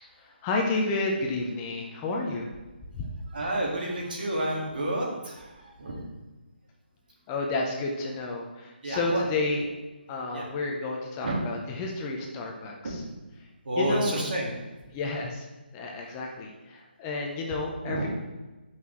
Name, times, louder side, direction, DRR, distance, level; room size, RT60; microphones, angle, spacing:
voice 1, 0.0-2.5 2.9-3.1 7.3-9.7 10.1-13.0 13.8-14.2 14.9-15.5 15.7-18.1, left 3 dB, 20° left, 0 dB, 0.8 m, -31 dB
voice 2, 3.3-6.1 8.8-9.2 10.3-10.5 11.2-11.3 12.8-13.0 13.6-14.5 17.8-18.1, right 1 dB, 55° right, -3 dB, 2.1 m, -30 dB
8.2 x 5.6 x 3.2 m, 1.1 s
figure-of-eight pair, 150°, 6 cm